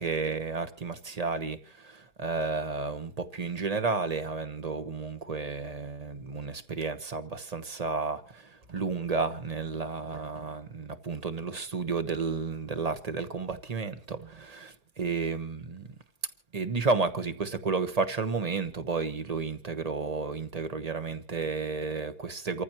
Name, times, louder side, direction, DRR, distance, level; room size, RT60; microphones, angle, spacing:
voice 1, 0.0-15.9 16.5-22.6, right 4 dB, 25° right, 1.0 m, -32 dB
29.0 x 14.5 x 3.0 m
omnidirectional pair, 1.8 m